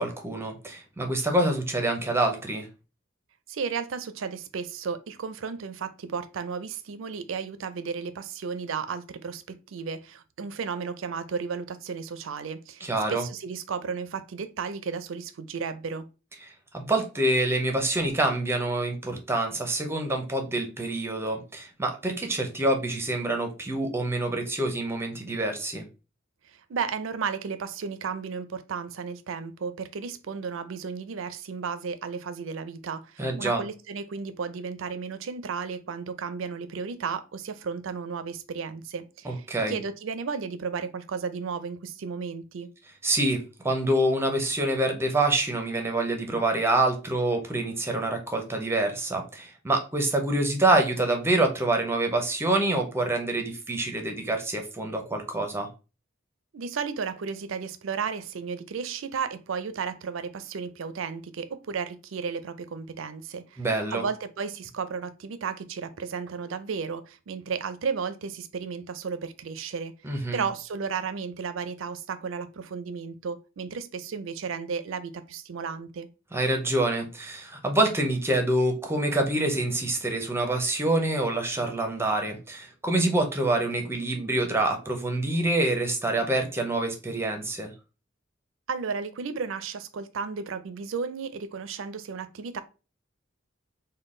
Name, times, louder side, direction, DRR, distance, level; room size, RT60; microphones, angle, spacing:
voice 1, 0.0-2.7 12.8-13.2 16.7-25.9 33.2-33.6 39.2-39.8 43.0-55.7 63.6-64.0 70.0-70.4 76.3-87.7, right 2 dB, 10° right, 0.7 m, -26 dB
voice 2, 3.5-12.8 13.1-16.1 26.4-42.7 56.5-63.6 63.9-76.1 88.7-92.6, right 5 dB, 70° right, 0.4 m, -34 dB
3.7 x 2.2 x 3.7 m
head